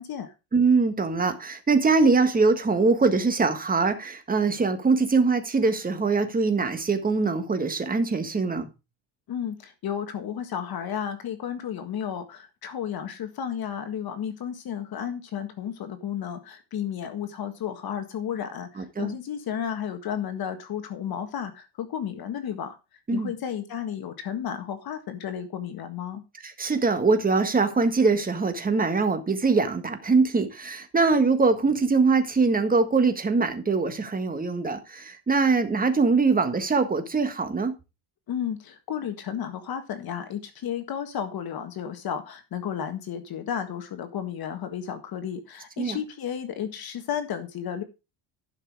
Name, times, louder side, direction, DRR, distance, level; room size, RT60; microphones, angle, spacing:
voice 1, 0.0-0.3 9.3-22.8 23.1-26.2 38.3-47.8, left 8 dB, 50° left, 1.7 m, -33 dB
voice 2, 0.5-8.7 18.8-19.1 23.1-23.3 26.4-37.7 45.8-46.0, right 4 dB, 20° right, 1.6 m, -23 dB
11.5 x 6.0 x 4.8 m
cardioid pair, 120°, 48 cm